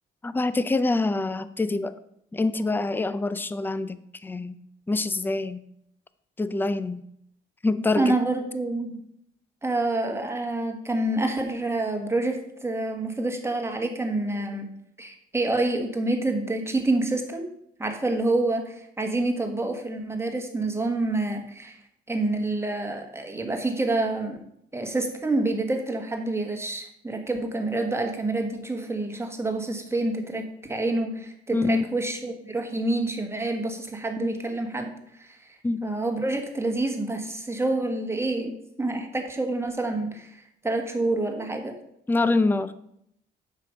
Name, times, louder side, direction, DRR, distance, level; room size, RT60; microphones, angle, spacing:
voice 1, 0.2-2.0 2.3-4.6 4.9-5.6 6.4-7.0 7.6-8.2 31.5-31.8 34.2-34.3 35.6-35.8 42.1-42.7, left 3 dB, 10° left, 14 dB, 0.5 m, -25 dB
voice 2, 7.9-8.9 9.6-14.7 15.0-17.4 17.8-21.8 22.1-24.4 24.7-34.9 35.2-41.7, right 2 dB, 15° right, 4 dB, 1.5 m, -27 dB
7.4 x 5.7 x 5.2 m, 0.74 s
cardioid pair, 90°, 20 cm